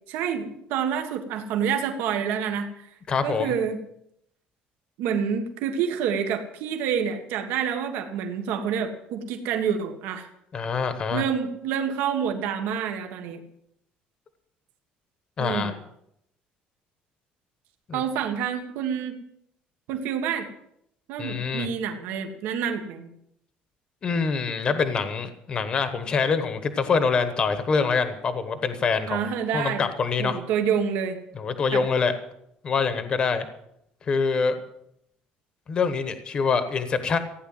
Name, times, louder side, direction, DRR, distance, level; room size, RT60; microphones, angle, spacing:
voice 1, 0.1-2.9 3.2-3.8 5.0-10.3 11.1-13.4 15.4-15.7 17.9-19.2 19.9-20.5 21.1-23.1 29.1-29.9 30.2-31.2 31.7-31.8, right 7 dB, 75° right, 5 dB, 1.7 m, -28 dB
voice 2, 3.1-3.5 10.5-11.2 15.4-15.7 17.9-18.0 21.2-21.7 24.0-29.3 29.5-30.4 31.3-32.1 32.6-33.5 34.0-34.6 35.7-37.2, left 5 dB, 25° left, 10 dB, 1.1 m, -25 dB
16.0 x 9.6 x 7.6 m, 0.75 s
cardioid pair, 180°, 3 cm